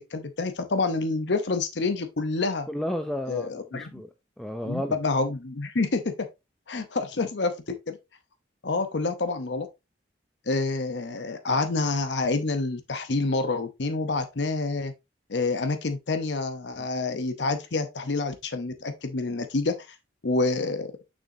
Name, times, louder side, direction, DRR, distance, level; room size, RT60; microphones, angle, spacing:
voice 1, 0.0-2.7 3.3-3.9 4.6-6.1 6.7-8.0 8.6-9.7 10.5-14.9 15.3-19.8 20.2-20.9, left 3 dB, 70° left, 0.8 m, -27 dB
voice 2, 2.7-5.0, equal, ahead, 0.4 m, -32 dB
6.3 x 6.1 x 2.7 m
head